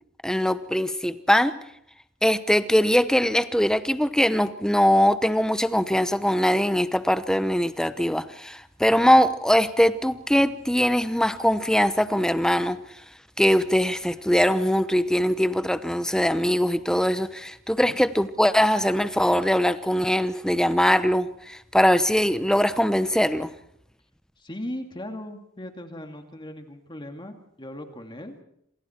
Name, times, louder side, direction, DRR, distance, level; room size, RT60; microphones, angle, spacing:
voice 1, 0.2-1.5 2.2-12.8 13.4-23.5, equal, 5° left, 12 dB, 0.9 m, -21 dB
voice 2, 24.4-28.4, left 1 dB, 25° left, 5 dB, 2.3 m, -38 dB
27.5 x 27.0 x 4.5 m, 0.72 s
head